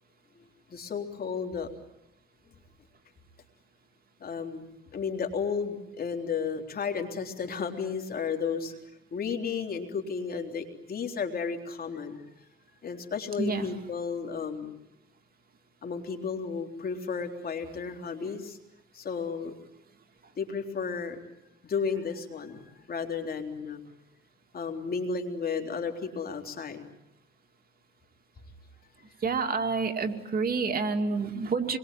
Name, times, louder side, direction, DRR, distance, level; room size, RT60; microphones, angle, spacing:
voice 1, 0.7-1.7 4.2-8.7 9.1-12.2 12.8-14.7 15.8-18.6 18.9-19.5 20.4-21.2 21.6-23.8 24.5-26.9, left 5 dB, 50° left, 4 dB, 3.7 m, -33 dB
voice 2, 13.4-13.7 29.2-31.8, right 4 dB, 50° right, 6 dB, 2.5 m, -28 dB
27.5 x 22.5 x 9.3 m, 0.84 s
cardioid pair, 90°, 20 cm